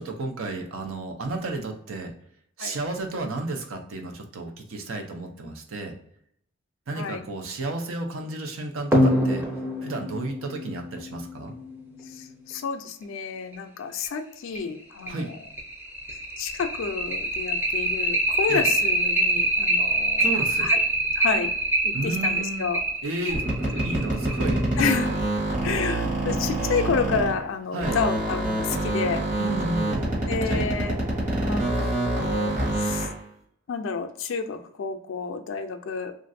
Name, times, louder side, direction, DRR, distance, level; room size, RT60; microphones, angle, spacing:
voice 1, 0.0-2.1 2.6-5.9 6.9-9.4 9.8-11.5 15.1-15.3 18.5-18.6 20.2-20.7 21.9-22.6 23.0-23.4 23.7-24.6 27.7-28.0 29.4-30.8 31.8-31.9, right 2 dB, 85° right, 3 dB, 0.6 m, -32 dB
voice 2, 7.0-7.3 12.1-15.4 16.4-20.3 20.6-20.8 21.2-21.5 21.8-22.8 23.6-23.7 24.8-25.1 25.6-29.2 30.3-31.0 31.4-33.1 33.7-36.1, left 5 dB, 75° left, 6 dB, 0.4 m, -30 dB
sound 1, 8.9-12.1 13.5-13.6 14.0-14.1 14.5-14.6 15.1-25.1, right 1 dB, 10° right, 0.5 m, -25 dB
sound 2, 23.3-27.5 27.8-33.2, right 1 dB, 35° right, 1.0 m, -26 dB
3.1 x 2.5 x 2.6 m, 0.69 s
head